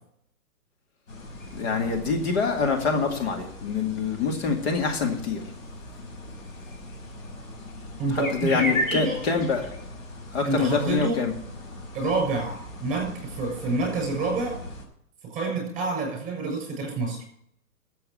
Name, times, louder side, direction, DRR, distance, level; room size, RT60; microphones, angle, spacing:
sound 1, 1.1-14.8, left 1 dB, 60° left, 5.3 m, -37 dB
voice 1, 1.5-5.4 8.1-9.7 10.3-11.3, left 5 dB, 45° left, 3 dB, 2.4 m, -25 dB
voice 2, 8.0-8.5 8.9-9.2 10.4-11.1 11.9-14.6 15.2-17.2, right 3 dB, 15° right, 2 dB, 6.9 m, -28 dB
13.5 x 7.8 x 7.7 m, 0.69 s
hypercardioid pair, 145°, 44 cm